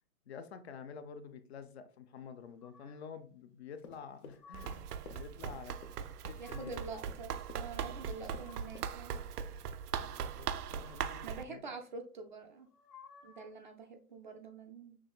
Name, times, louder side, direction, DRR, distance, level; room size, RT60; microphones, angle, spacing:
voice 1, 0.3-6.8 9.9-11.6, left 6 dB, 45° left, 10 dB, 0.5 m, -49 dB
sound 1, 2.6-3.2 4.0-5.0 6.0-7.0 7.9-9.1 10.6-11.5 12.6-13.6, left 6 dB, 90° left, 1.2 m, -59 dB
Run, 3.8-8.5 8.7-9.0 9.3-9.7, left 4 dB, 70° left, 0.9 m, -53 dB
Run 2, 4.5-11.4, right 7 dB, 85° right, 0.5 m, -40 dB
voice 2, 6.4-9.2 11.2-12.7 13.2-15.0, right 4 dB, 35° right, 4 dB, 0.4 m, -46 dB
6.1 x 3.1 x 2.3 m, 0.40 s
hypercardioid pair, 140°, 45 cm